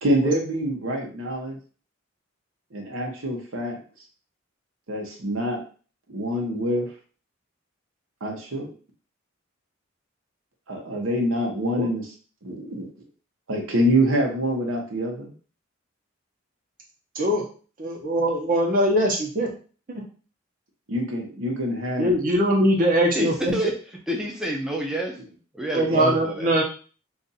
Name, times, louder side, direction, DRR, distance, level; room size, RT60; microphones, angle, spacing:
voice 1, 0.0-1.6 2.7-3.8 4.9-5.6 6.1-6.9 8.2-8.7 10.7-12.0 12.4-12.9 13.5-15.3 20.9-22.1 25.9-26.2, equal, 75° right, 1 dB, 0.9 m, -25 dB
voice 2, 17.8-19.5 19.9-20.0 22.0-23.6 25.7-26.6, equal, 45° right, 0 dB, 0.9 m, -22 dB
voice 3, 23.2-23.7 24.1-25.2 25.5-26.5, right 1 dB, 5° right, -1 dB, 0.4 m, -28 dB
2.5 x 2.5 x 4.0 m, 0.39 s
head